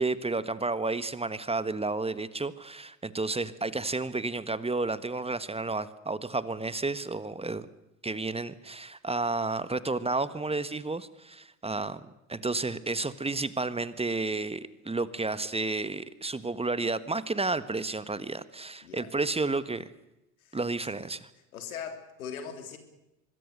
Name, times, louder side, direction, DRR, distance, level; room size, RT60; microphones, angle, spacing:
voice 1, 0.0-7.7 8.0-19.9 20.5-21.3, right 3 dB, 15° right, 15 dB, 1.5 m, -31 dB
voice 2, 21.5-22.8, left 7 dB, 85° left, 8 dB, 3.6 m, -40 dB
25.0 x 22.0 x 6.8 m, 0.92 s
hypercardioid pair, 70°, 41 cm